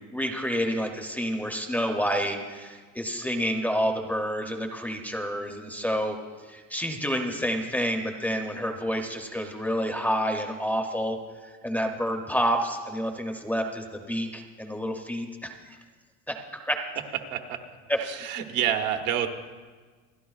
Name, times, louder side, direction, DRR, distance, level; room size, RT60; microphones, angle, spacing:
voice 1, 0.0-6.2 6.4-15.8 16.3-16.4 16.6-16.8 17.9-18.0, equal, 5° left, 3 dB, 0.5 m, -29 dB
voice 2, 18.0-19.3, right 10 dB, 80° right, 5 dB, 1.2 m, -28 dB
28.5 x 11.5 x 2.3 m, 1.4 s
cardioid pair, 175°, 32 cm